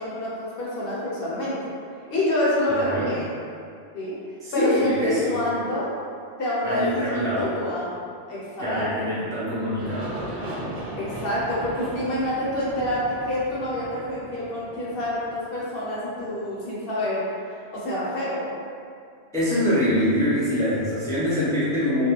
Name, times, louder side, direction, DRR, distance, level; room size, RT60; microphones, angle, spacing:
voice 1, 0.0-1.7 2.1-3.3 3.9-4.2 4.5-6.0 6.4-7.9 8.3-9.3 10.9-17.3 17.7-18.6, left 1 dB, 65° left, -7 dB, 0.7 m, -27 dB
voice 2, 2.7-3.1 4.4-5.4 6.6-7.5 8.6-10.1 19.3-22.1, equal, 5° left, -10 dB, 0.3 m, -24 dB
Aircraft, 9.8-16.5, right 1 dB, 80° right, 1.0 m, -37 dB
2.3 x 2.0 x 2.8 m, 2.3 s
omnidirectional pair, 1.1 m